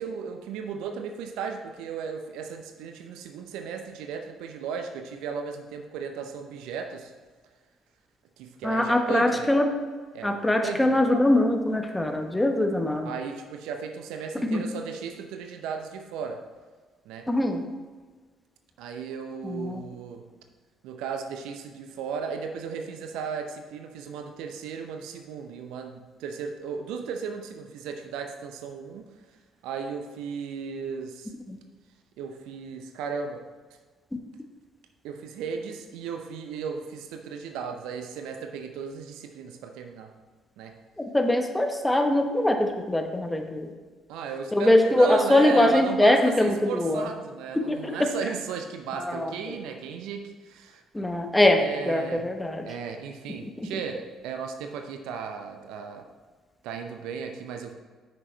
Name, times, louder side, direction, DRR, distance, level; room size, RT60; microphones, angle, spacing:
voice 1, 0.0-7.1 8.4-9.5 10.1-11.0 13.0-16.4 17.0-17.3 18.8-20.2 20.8-29.4 29.6-31.3 32.2-33.4 35.0-40.1 40.6-40.8 44.1-50.8 51.6-52.3 52.6-56.1 56.6-57.7, right 6 dB, 65° right, 5 dB, 0.6 m, -35 dB
voice 2, 8.6-9.6 10.2-13.1 14.5-14.6 17.3-17.6 19.4-19.8 31.5-31.6 41.1-43.7 44.5-47.1 47.5-48.1 49.1-49.6 50.9-51.6 51.9-52.6 53.6-53.7, left 1 dB, 10° left, 4 dB, 1.1 m, -22 dB
8.9 x 6.1 x 3.2 m, 1.4 s
figure-of-eight pair, 50°, 0 cm